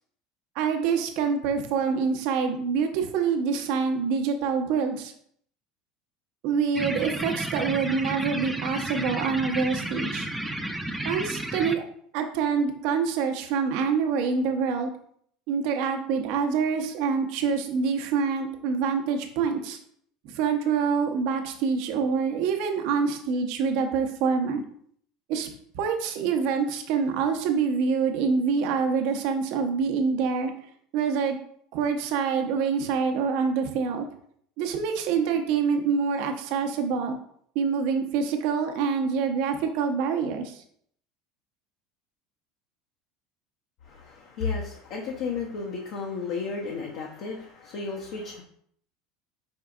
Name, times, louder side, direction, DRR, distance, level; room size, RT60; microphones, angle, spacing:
voice 1, 0.6-5.1 6.4-10.3 11.0-11.8 12.1-14.9 15.5-19.8 20.2-24.6 25.3-25.5 25.7-30.5 30.9-31.4 31.7-34.0 34.6-37.2 37.5-40.6, right 5 dB, 60° right, 4 dB, 0.7 m, -26 dB
sound 1, 6.7-11.7, right 1 dB, 5° right, 0.5 m, -32 dB
voice 2, 43.8-48.4, left 4 dB, 60° left, 0 dB, 0.7 m, -33 dB
4.8 x 4.4 x 2.4 m, 0.65 s
hypercardioid pair, 75°, 0 cm